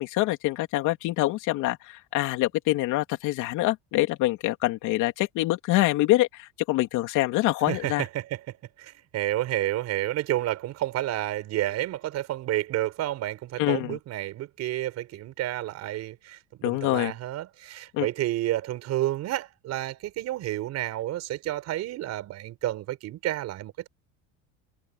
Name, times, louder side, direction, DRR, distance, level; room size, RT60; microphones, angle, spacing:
voice 1, 0.0-8.1 13.6-14.0 16.6-17.1 17.9-18.1, left 17 dB, 60° left, 3.3 m, -25 dB
voice 2, 7.7-8.4 8.8-23.9, right 14 dB, 50° right, 5.5 m, -30 dB
cardioid pair, 150°, 35 cm